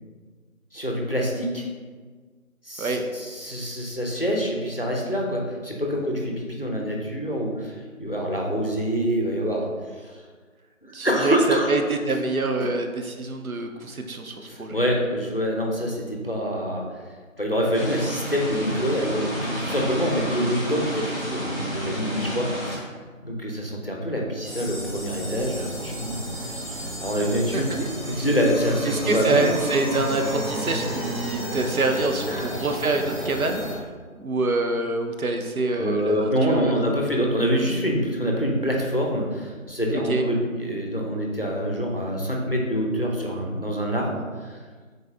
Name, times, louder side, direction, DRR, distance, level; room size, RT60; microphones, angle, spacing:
voice 1, 0.7-1.6 2.6-10.2 10.8-11.7 14.5-16.8 17.4-22.9 23.2-29.5 32.3-32.4 35.8-44.5, equal, 45° left, -1 dB, 0.5 m, -26 dB
voice 2, 10.9-14.8 27.5-28.2 28.9-33.9 34.2-36.7 39.9-40.3, right 2 dB, 85° right, 4 dB, 0.7 m, -26 dB
sound 1, 17.7-22.8, equal, 45° right, 1.0 m, -31 dB
sound 2, 24.4-33.7, equal, ahead, 0.6 m, -32 dB
4.2 x 3.9 x 2.4 m, 1.5 s
figure-of-eight pair, 170°, 41 cm